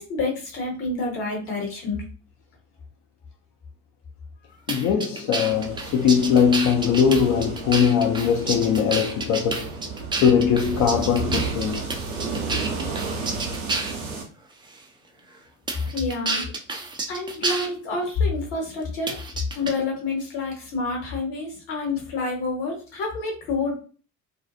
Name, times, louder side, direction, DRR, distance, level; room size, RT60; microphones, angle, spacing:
voice 1, 0.0-2.0 15.9-16.4 17.1-19.2 19.5-23.8, left 3 dB, 65° left, 1.2 m, -28 dB
voice 2, 4.7-9.7 10.2-11.9, left 7 dB, 45° left, 0.5 m, -21 dB
sound 1, 4.7-14.0 14.7-14.8 15.7-17.7 19.1-19.7, right 3 dB, 10° right, 0.3 m, -30 dB
sound 2, 5.5-14.2, right 4 dB, 75° right, 0.7 m, -32 dB
2.5 x 2.3 x 2.5 m
figure-of-eight pair, 55°, 43 cm